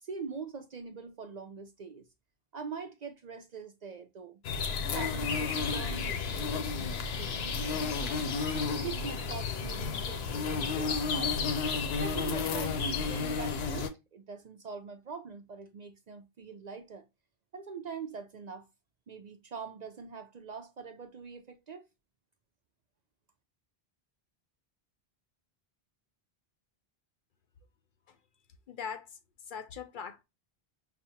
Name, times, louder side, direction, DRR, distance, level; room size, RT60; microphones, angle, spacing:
voice 1, 0.0-2.1 2.5-4.4 4.9-8.4 8.8-11.5 12.0-17.1 17.5-18.7 19.1-21.8, right 5 dB, 55° right, 0.5 m, -43 dB
sound 1, 4.4-13.9, left 5 dB, 85° left, 0.9 m, -32 dB
voice 2, 28.7-29.2 29.5-30.2, left 6 dB, 60° left, 0.7 m, -41 dB
5.9 x 2.1 x 2.7 m
omnidirectional pair, 1.0 m